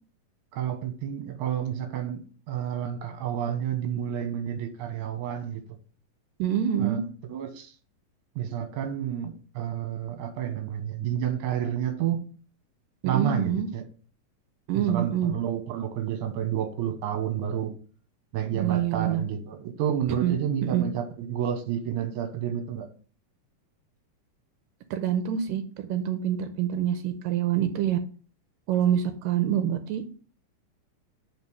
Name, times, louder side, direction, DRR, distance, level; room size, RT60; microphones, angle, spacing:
voice 1, 0.5-5.6 6.8-7.0 7.3-7.7 8.4-12.2 13.1-13.8 14.7-17.7 18.3-22.8, right 9 dB, 65° right, 6 dB, 2.6 m, -30 dB
voice 2, 6.4-7.0 13.0-13.7 14.7-15.3 18.5-19.2 20.2-20.4 20.6-20.8 24.9-28.0 28.7-30.0, right 10 dB, 85° right, 7 dB, 2.3 m, -26 dB
5.6 x 5.3 x 6.3 m, 0.40 s
omnidirectional pair, 3.9 m